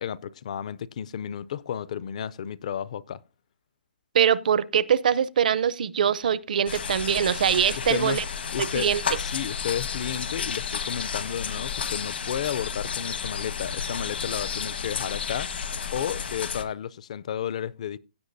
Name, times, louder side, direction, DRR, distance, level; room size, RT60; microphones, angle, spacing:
voice 1, 0.0-3.2 7.9-8.2 8.5-8.9 9.2-15.5 15.9-18.0, left 9 dB, 40° left, 0.4 m, -32 dB
voice 2, 4.1-8.2 8.6-9.0, right 8 dB, 50° right, 0.5 m, -23 dB
sound 1, 6.7-16.6, left 6 dB, 75° left, 1.4 m, -32 dB
16.5 x 7.9 x 2.6 m
hypercardioid pair, 170°, 6 cm